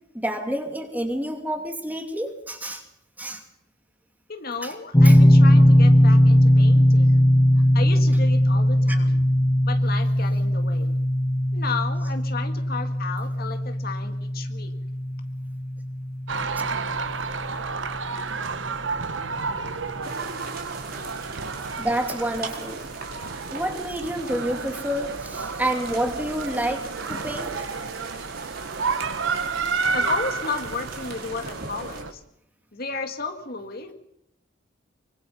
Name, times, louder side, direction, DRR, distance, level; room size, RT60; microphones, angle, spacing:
voice 1, 0.1-2.8 3.2-3.4 4.6-4.7 5.0-5.2 7.0-7.1 8.9-9.0 21.8-22.9 23.5-27.7, right 1 dB, 10° right, 5 dB, 2.6 m, -29 dB
voice 2, 4.3-7.2 7.7-9.2 9.6-11.0 11.5-14.7 23.4-23.7 29.9-32.2 32.7-33.9, left 4 dB, 50° left, 6 dB, 2.1 m, -33 dB
sound 1, 4.9-17.9, equal, 15° left, 1.3 m, -19 dB
sound 2, 16.3-32.1, right 4 dB, 75° right, 1.2 m, -31 dB
sound 3, 20.0-32.0, right 4 dB, 50° right, 4.4 m, -40 dB
24.5 x 23.0 x 5.7 m, 0.76 s
head